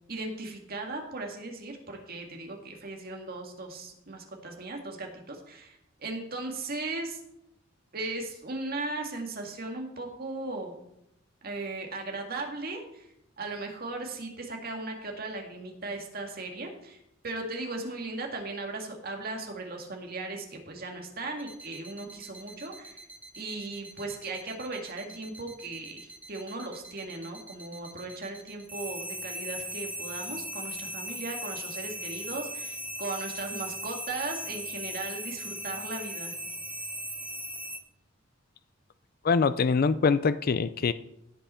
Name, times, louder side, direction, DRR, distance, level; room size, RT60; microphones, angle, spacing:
voice 1, 0.1-7.2 7.9-10.7 11.4-13.1 13.4-17.0 17.2-23.0 23.3-36.3, right 2 dB, 50° right, 2.0 m, -37 dB
sound 1, 21.4-37.8, equal, 10° right, 0.8 m, -39 dB
voice 2, 39.2-40.9, left 5 dB, 45° left, 0.4 m, -24 dB
16.5 x 5.7 x 4.3 m
head